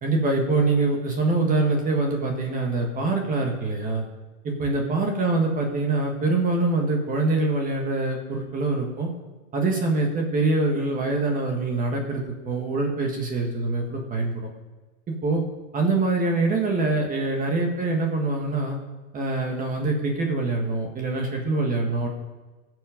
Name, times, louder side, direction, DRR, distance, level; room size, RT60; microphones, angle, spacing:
voice 1, 0.0-4.0 4.4-9.1 9.5-14.5 15.1-15.4 15.7-18.8 19.1-22.1, right 3 dB, 20° right, 2 dB, 1.6 m, -24 dB
15.5 x 6.5 x 5.1 m, 1.2 s
supercardioid pair, 140°, 41 cm